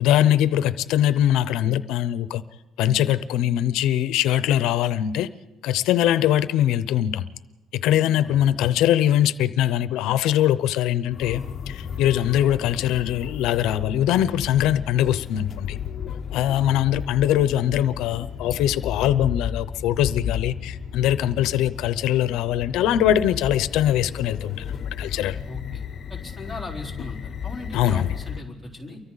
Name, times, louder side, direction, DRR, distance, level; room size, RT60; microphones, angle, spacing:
voice 1, 0.0-2.4 2.8-5.3 5.6-7.3 7.8-15.8 16.3-24.6 25.0-25.4 27.7-28.1, left 11 dB, 90° left, 0.7 m, -22 dB
sound 1, 11.1-28.4, left 7 dB, 40° left, 0.9 m, -34 dB
voice 2, 25.5-25.8 26.1-29.0, left 2 dB, ahead, 4.1 m, -38 dB
29.0 x 24.0 x 4.0 m
cardioid pair, 155°, 0 cm